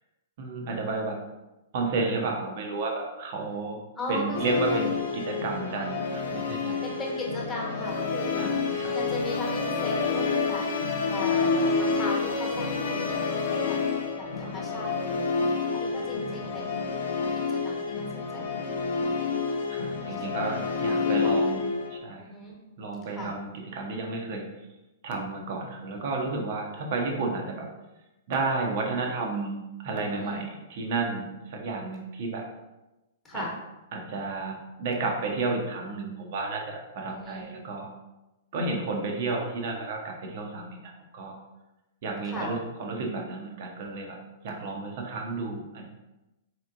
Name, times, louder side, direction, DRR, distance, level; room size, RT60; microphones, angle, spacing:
voice 1, 0.4-1.2 1.7-3.8 4.1-6.8 8.4-9.0 16.0-16.5 19.7-21.6 21.9-22.3 22.8-24.5 25.0-27.7 28.3-32.5 33.3-33.5 33.9-37.9 38.5-41.3 42.0-44.2 44.4-45.9, right 3 dB, 50° right, 1 dB, 0.8 m, -32 dB
voice 2, 4.0-4.9 6.8-10.6 11.1-13.8 14.1-15.5 15.7-16.9 17.3-19.1 20.2-20.3 21.0-21.3 22.2-22.5 23.1-23.3 30.1-30.3 33.2-33.6 37.1-37.4 42.2-42.6, left 1 dB, 15° left, -3 dB, 1.2 m, -37 dB
Musical instrument, 4.3-22.0, left 4 dB, 55° left, 0.4 m, -28 dB
4.2 x 2.9 x 2.5 m, 0.99 s
figure-of-eight pair, 110°, 0 cm